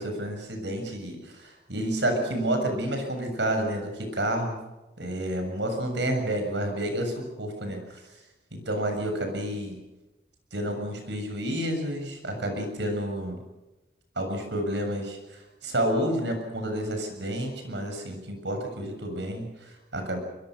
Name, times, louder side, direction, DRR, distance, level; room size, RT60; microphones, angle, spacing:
voice 1, 0.0-4.6 5.0-7.8 8.7-9.7 10.5-13.4 14.2-20.2, right 1 dB, 85° right, 5 dB, 7.2 m, -30 dB
24.0 x 23.5 x 6.5 m, 1.0 s
head